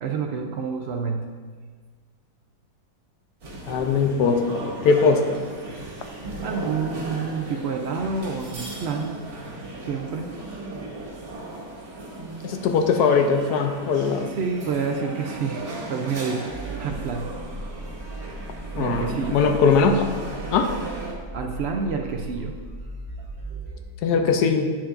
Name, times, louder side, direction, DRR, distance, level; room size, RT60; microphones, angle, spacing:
voice 1, 0.0-1.3 6.4-9.1 9.8-10.3 14.4-17.3 18.7-19.4 21.3-22.5 23.2-23.8, right 5 dB, 85° right, 3 dB, 0.5 m, -28 dB
sound 1, 3.4-21.1, right 2 dB, 65° right, 1.9 m, -36 dB
voice 2, 3.7-5.4 12.4-14.4 18.8-20.1 20.5-20.7 24.0-24.8, left 5 dB, 80° left, 5 dB, 1.1 m, -21 dB
sound 2, 16.5-23.8, right 1 dB, 10° left, 1.6 m, -37 dB
8.8 x 6.9 x 2.5 m, 1.5 s
omnidirectional pair, 1.7 m